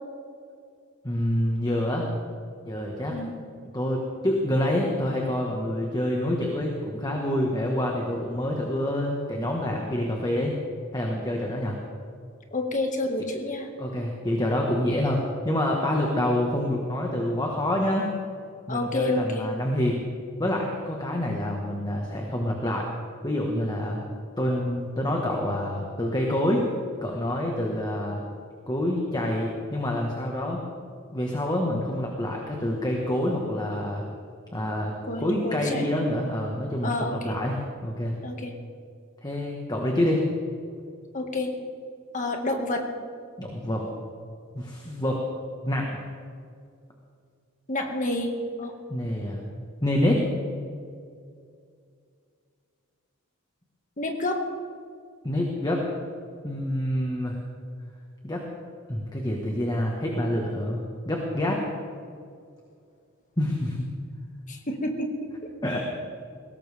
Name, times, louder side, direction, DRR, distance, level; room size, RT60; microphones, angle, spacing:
voice 1, 1.0-2.1 2.6-3.2 3.7-10.5 10.9-11.8 13.8-18.1 18.7-20.0 20.4-22.9 23.2-24.0 24.4-26.6 27.0-28.2 28.7-30.6 31.1-34.0 34.5-34.9 35.2-38.2 39.2-40.3 43.4-43.9 44.5-45.2 45.6-45.9 48.9-49.4 49.8-50.2 55.2-55.8 56.4-57.4 58.2-58.4 58.9-61.7 63.4-63.9 65.6-65.8, left 1 dB, 20° left, 0 dB, 1.6 m, -27 dB
voice 2, 12.5-13.7 18.7-19.5 35.1-35.9 36.8-37.4 38.2-38.5 41.1-41.5 42.1-42.9 47.7-48.3 48.6-48.7 54.0-54.5 64.5-65.3, left 2 dB, 35° left, 3 dB, 1.9 m, -29 dB
21.0 x 17.5 x 3.6 m, 2.3 s
head